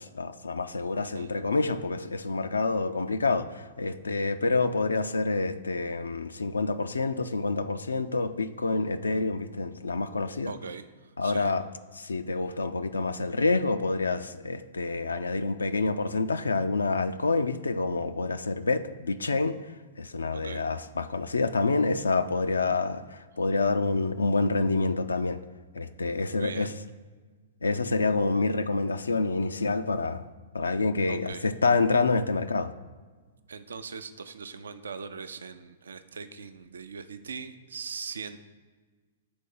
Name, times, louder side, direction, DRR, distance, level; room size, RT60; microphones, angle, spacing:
voice 1, 0.0-10.5 11.2-11.6 11.9-19.6 20.0-25.4 25.7-26.7 27.6-30.3 30.5-32.7, left 3 dB, 80° left, 10 dB, 0.3 m, -27 dB
voice 2, 10.5-11.6 20.3-20.6 26.3-26.7 31.1-31.5 33.5-38.4, right 5 dB, 75° right, 10 dB, 0.4 m, -40 dB
5.2 x 3.8 x 5.3 m, 1.4 s
figure-of-eight pair, 115°, 0 cm